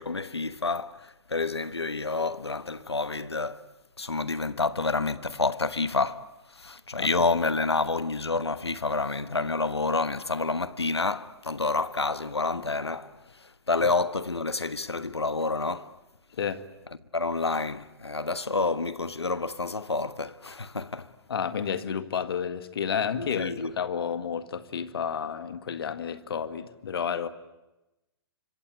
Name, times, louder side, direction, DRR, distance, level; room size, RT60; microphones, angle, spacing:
voice 1, 0.0-3.7 4.0-6.2 6.5-15.9 17.1-21.1 23.2-23.7, left 3 dB, 90° left, 1.3 m, -29 dB
voice 2, 21.3-27.3, left 7 dB, 70° left, 1.9 m, -31 dB
26.0 x 24.0 x 9.7 m
figure-of-eight pair, 115°, 13 cm